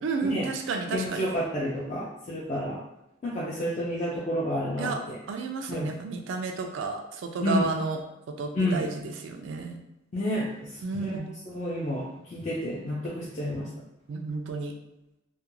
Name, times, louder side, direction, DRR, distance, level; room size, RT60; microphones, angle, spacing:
voice 1, 0.0-1.3 4.8-5.0 5.3-8.0 8.3-9.8 10.8-11.3 14.1-14.8, right 4 dB, 80° right, 3 dB, 0.3 m, -31 dB
voice 2, 0.9-2.8 3.2-5.2 5.7-5.9 7.4-7.7 8.5-8.9 10.1-11.2 11.5-13.7, left 1 dB, 40° left, -6 dB, 0.4 m, -30 dB
2.3 x 2.2 x 3.0 m, 0.90 s
head